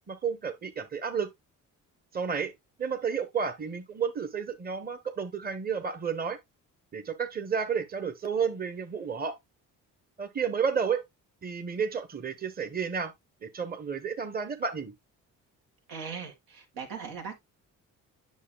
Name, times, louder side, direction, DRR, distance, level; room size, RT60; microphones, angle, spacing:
voice 1, 0.1-1.3 2.1-2.5 2.8-6.4 6.9-9.4 10.2-11.0 11.4-13.1 13.4-14.9, right 6 dB, 25° right, 1.0 m, -31 dB
voice 2, 15.9-17.4, right 6 dB, 85° right, 2.1 m, -39 dB
8.4 x 6.2 x 2.2 m
cardioid pair, 80°, 34 cm